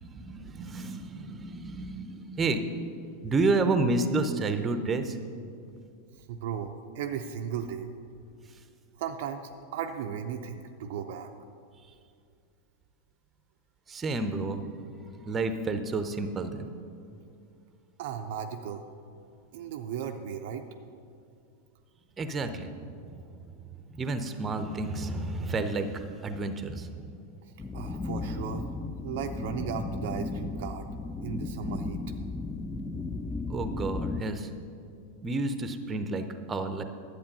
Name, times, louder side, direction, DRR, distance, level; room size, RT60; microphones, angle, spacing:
voice 1, 0.0-2.6 3.2-5.2 13.9-14.6 15.2-16.7 22.2-22.8 23.1-23.5 23.9-27.1 33.5-34.5 35.2-36.8, right 3 dB, 20° right, 9 dB, 0.7 m, -30 dB
voice 2, 6.3-7.9 9.0-9.4 9.7-11.3 18.0-18.8 19.5-20.6 27.7-28.7 29.0-30.8 31.2-32.0, right 8 dB, 50° right, 5 dB, 0.5 m, -36 dB
sound 1, 27.6-34.2, left 3 dB, 15° left, 0.4 m, -35 dB
11.0 x 8.3 x 5.4 m, 2.4 s
figure-of-eight pair, 90°, 0 cm